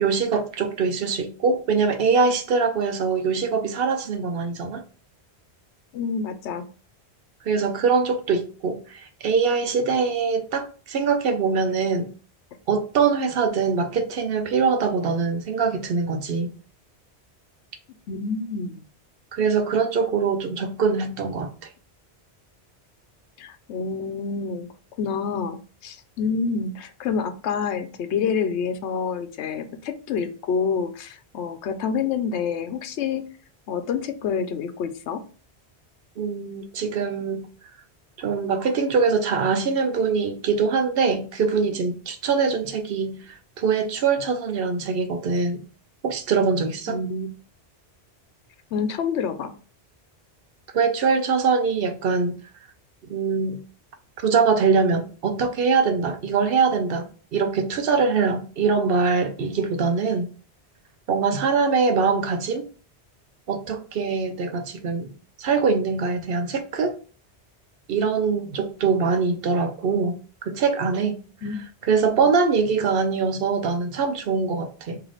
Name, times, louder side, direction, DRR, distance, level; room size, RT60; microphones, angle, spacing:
voice 1, 0.0-4.8 7.4-12.1 12.7-16.5 19.3-21.7 36.2-37.5 38.2-45.6 46.0-47.0 50.7-52.4 53.0-53.6 54.2-60.3 61.1-62.7 63.5-65.1 65.4-66.9 67.9-70.2 70.4-71.2 71.9-75.0, right 5 dB, 65° right, 0.8 m, -23 dB
voice 2, 5.9-6.7 18.1-18.8 23.4-24.7 25.0-33.2 33.7-35.2 46.9-47.3 48.7-49.5 71.4-71.6 72.1-72.2, left 6 dB, 85° left, 0.9 m, -27 dB
3.1 x 2.8 x 3.9 m
omnidirectional pair, 1.1 m